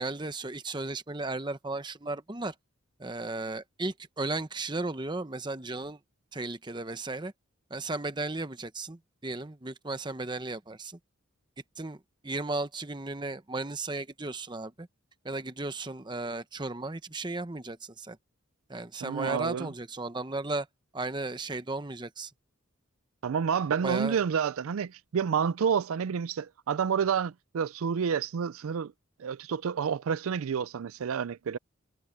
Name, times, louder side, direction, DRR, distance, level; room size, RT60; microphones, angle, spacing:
voice 1, 0.0-2.5 3.0-6.0 6.3-7.3 7.7-11.0 11.8-14.9 15.2-18.2 18.7-20.7 20.9-22.3 23.8-24.2, right 2 dB, 20° right, 0.9 m, -35 dB
voice 2, 19.0-19.7 23.2-28.9 29.2-31.6, right 7 dB, 85° right, 0.4 m, -29 dB
head